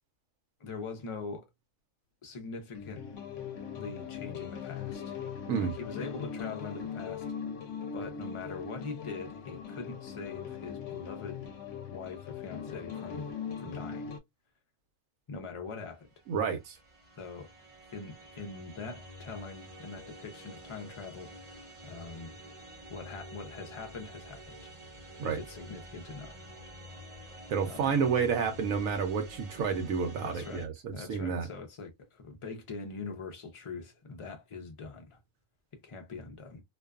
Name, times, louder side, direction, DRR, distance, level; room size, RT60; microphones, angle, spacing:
voice 1, 0.6-1.5 2.2-3.0 3.8-5.2 5.6-7.2 7.9-11.5 11.9-13.3 13.6-14.1 15.3-16.1 17.2-17.5 17.9-22.4 22.9-24.7 25.2-26.3 27.7-28.0 30.2-35.2 35.7-36.6, left 4 dB, 45° left, 0.4 m, -43 dB
sound 1, 2.7-14.2, left 7 dB, 70° left, 0.9 m, -40 dB
sound 2, 16.3-30.7, equal, 45° right, 0.4 m, -49 dB
voice 2, 16.3-16.8 25.2-25.4 27.5-31.5, right 6 dB, 80° right, 1.0 m, -30 dB
2.5 x 2.3 x 2.3 m
omnidirectional pair, 1.4 m